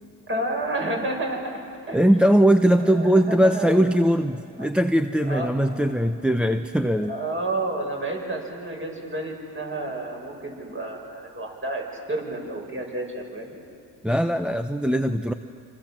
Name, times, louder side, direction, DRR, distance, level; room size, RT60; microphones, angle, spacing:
voice 1, 0.3-1.6 1.9-2.1 2.8-3.8 4.6-4.7 5.2-5.6 7.0-13.6, right 2 dB, 30° right, 1 dB, 6.7 m, -30 dB
voice 2, 1.9-7.1 14.0-15.3, equal, ahead, 7 dB, 0.8 m, -20 dB
27.0 x 26.5 x 7.6 m, 2.4 s
cardioid pair, 95°, 43 cm